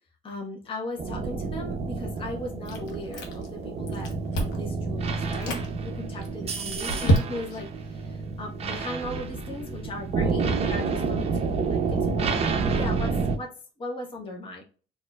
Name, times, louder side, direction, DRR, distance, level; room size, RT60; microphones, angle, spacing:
voice 1, 0.2-4.1 4.4-5.6 5.8-14.6, left 1 dB, 30° left, 0 dB, 0.9 m, -37 dB
sound 1, 1.0-13.4, right 4 dB, 35° right, 0.6 m, -29 dB
Chewing mastication, 2.7-3.6 3.9-4.7 5.2-5.7 6.2-7.7, right 1 dB, 90° left, 0.9 m, -27 dB
4.2 x 2.5 x 2.2 m, 0.38 s
cardioid pair, 110°, 17 cm